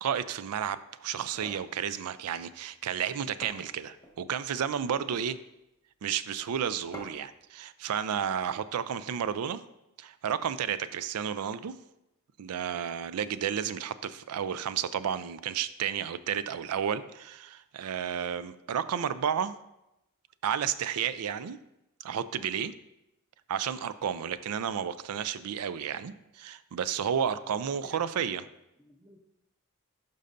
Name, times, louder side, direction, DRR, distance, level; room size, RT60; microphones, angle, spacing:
voice 1, 0.0-5.4 6.0-9.6 10.0-11.8 12.4-19.5 20.4-21.6 22.0-22.7 23.5-28.4, right 8 dB, 90° right, 14 dB, 0.4 m, -32 dB
sound 1, 1.1-1.7 3.0-3.1 3.4-4.2 4.9-5.3 6.9-7.4, equal, 15° left, 1.1 m, -47 dB
voice 2, 27.4-29.2, left 2 dB, 10° right, 4 dB, 0.7 m, -54 dB
11.5 x 5.4 x 2.6 m, 0.87 s
head